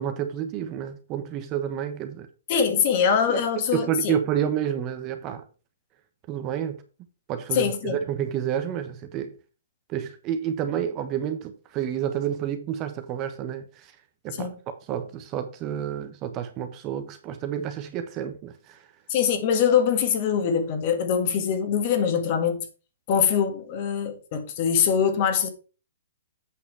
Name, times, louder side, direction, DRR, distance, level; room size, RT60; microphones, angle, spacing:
voice 1, 0.0-2.3 3.3-3.4 3.7-5.4 6.3-6.8 7.3-9.3 9.9-13.9 14.2-18.8, right 9 dB, 30° right, 1.2 m, -29 dB
voice 2, 2.5-4.1 7.5-8.0 14.4-14.5 19.1-22.7 23.1-25.5, left 7 dB, 45° left, 2.0 m, -23 dB
8.3 x 5.8 x 4.7 m
hypercardioid pair, 140°, 0 cm